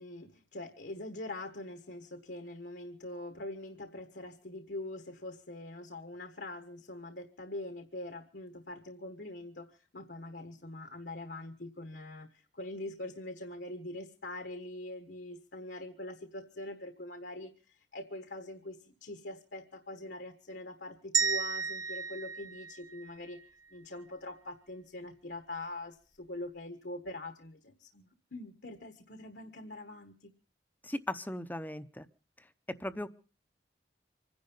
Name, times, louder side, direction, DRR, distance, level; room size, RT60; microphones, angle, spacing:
voice 1, 0.0-23.4 23.7-30.3, left 2 dB, 65° left, 7 dB, 1.4 m, -43 dB
sound 1, 21.1-23.4, right 5 dB, 25° right, 0.9 m, -33 dB
voice 2, 30.8-32.1 32.4-32.5 32.8-33.1, left 1 dB, 10° left, 11 dB, 0.7 m, -37 dB
25.0 x 10.5 x 5.4 m, 0.38 s
head